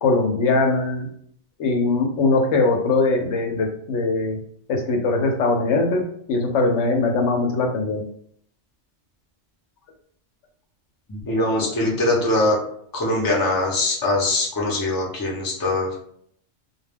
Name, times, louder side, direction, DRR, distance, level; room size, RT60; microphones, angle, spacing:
voice 1, 0.0-1.1 1.6-4.4 4.7-6.0 6.3-8.0 11.3-11.7, left 3 dB, 80° left, 2 dB, 0.9 m, -21 dB
voice 2, 11.1-12.6 12.9-16.0, left 2 dB, 25° left, -3 dB, 0.6 m, -22 dB
2.3 x 2.1 x 3.3 m, 0.64 s
omnidirectional pair, 1.2 m